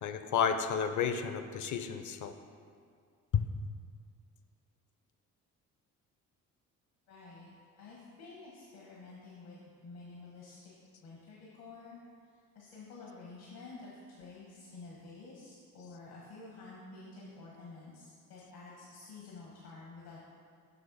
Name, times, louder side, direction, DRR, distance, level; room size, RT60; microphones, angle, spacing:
voice 1, 0.0-2.3 3.3-3.4, left 7 dB, 50° left, 9 dB, 0.7 m, -31 dB
voice 2, 7.1-7.5 7.7-10.7 11.0-12.0 12.5-20.2, left 3 dB, 70° left, -5 dB, 1.5 m, -50 dB
6.7 x 6.2 x 4.1 m, 2.2 s
hypercardioid pair, 50°, 38 cm